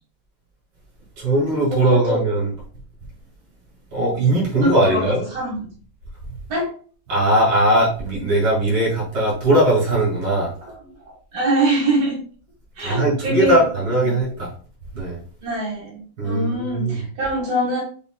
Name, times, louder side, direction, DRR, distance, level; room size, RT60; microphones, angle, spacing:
voice 1, 1.2-2.5 3.9-5.2 7.1-10.5 12.8-14.5 14.9-15.2 16.2-17.0, right 1 dB, 80° right, -5 dB, 3.0 m, -19 dB
voice 2, 1.7-2.2 4.6-5.7 6.5-6.7 10.7-12.2 12.8-13.6 15.4-17.8, right 1 dB, 50° right, -4 dB, 2.3 m, -23 dB
7.1 x 2.4 x 2.3 m, 0.43 s
omnidirectional pair, 2.1 m